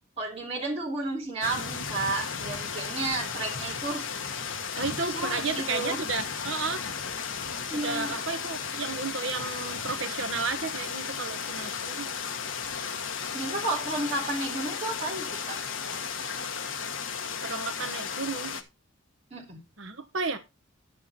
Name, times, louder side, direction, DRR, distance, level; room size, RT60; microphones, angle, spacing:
voice 1, 0.2-4.0 5.1-6.0 7.7-8.2 13.3-15.6 19.3-19.6, right 2 dB, 30° right, 3.3 m, -32 dB
sound 1, 1.4-18.6, left 6 dB, 65° left, 1.2 m, -34 dB
voice 2, 4.8-6.8 7.8-12.1 17.4-18.6 19.8-20.4, right 4 dB, 65° right, 1.2 m, -33 dB
10.5 x 7.1 x 4.3 m
head